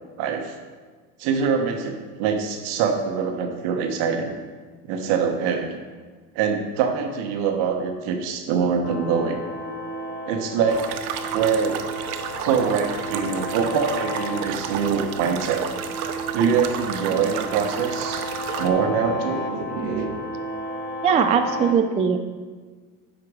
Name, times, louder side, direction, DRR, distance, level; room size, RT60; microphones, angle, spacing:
voice 1, 0.2-0.5 1.2-4.4 4.8-5.7 6.3-9.4 10.2-10.9 11.3-11.9 12.4-15.6 16.3-18.3 18.6-20.1, right 6 dB, 70° right, 5 dB, 1.2 m, -24 dB
sound 1, 8.8-21.7, equal, 25° left, 0.9 m, -33 dB
sound 2, 10.7-18.7, right 9 dB, 85° right, 0.8 m, -32 dB
voice 2, 21.0-22.3, right 7 dB, 15° right, 6 dB, 0.3 m, -20 dB
8.0 x 5.0 x 5.0 m, 1.5 s
supercardioid pair, 110°, 43 cm